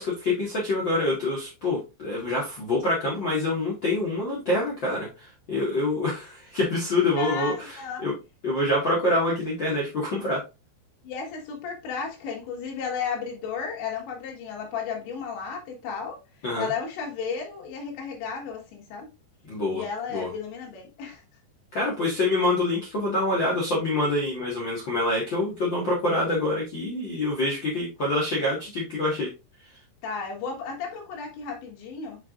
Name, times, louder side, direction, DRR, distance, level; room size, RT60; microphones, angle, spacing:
voice 1, 0.0-8.1 8.4-10.4 16.4-16.7 19.5-19.8 20.1-20.3 21.7-29.3, left 2 dB, 65° left, 1.1 m, -26 dB
voice 2, 7.2-8.1 11.0-16.2 16.6-19.1 19.7-21.2 30.0-32.2, left 6 dB, 85° left, 4.0 m, -33 dB
7.9 x 4.7 x 2.5 m
omnidirectional pair, 5.0 m